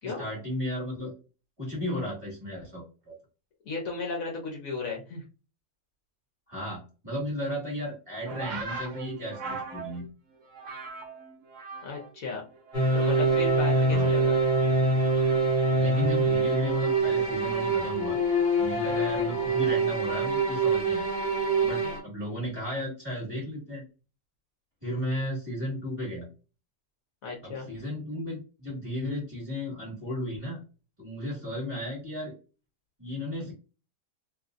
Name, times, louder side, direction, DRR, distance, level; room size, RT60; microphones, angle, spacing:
voice 1, 0.0-1.1 1.6-3.1 6.5-10.0 13.9-14.1 15.8-18.2 18.6-21.1 21.6-23.8 24.8-26.3 27.4-30.6 31.0-32.3 33.0-33.5, equal, 20° right, -5 dB, 1.8 m, -34 dB
voice 2, 3.6-5.2 11.8-12.4 12.9-14.4 18.8-19.0 21.8-22.0 27.2-27.7, left 3 dB, 65° left, -1 dB, 1.2 m, -35 dB
sound 1, 8.2-12.2 12.5-13.4 13.7-16.3 17.2-17.5, right 4 dB, 55° right, 1.0 m, -41 dB
sound 2, 12.7-22.0, right 2 dB, 30° left, 1.5 m, -25 dB
3.1 x 2.8 x 2.5 m, 0.33 s
omnidirectional pair, 1.7 m